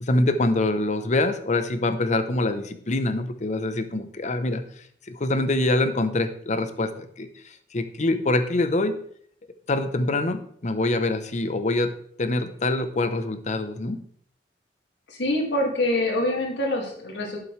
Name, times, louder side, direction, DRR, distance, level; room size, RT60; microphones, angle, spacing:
voice 1, 0.0-4.6 5.1-9.0 9.7-11.9 12.2-14.0, left 2 dB, 45° left, 10 dB, 0.8 m, -25 dB
voice 2, 15.1-17.4, left 1 dB, 80° left, 0 dB, 2.2 m, -25 dB
11.5 x 7.6 x 3.2 m, 0.63 s
head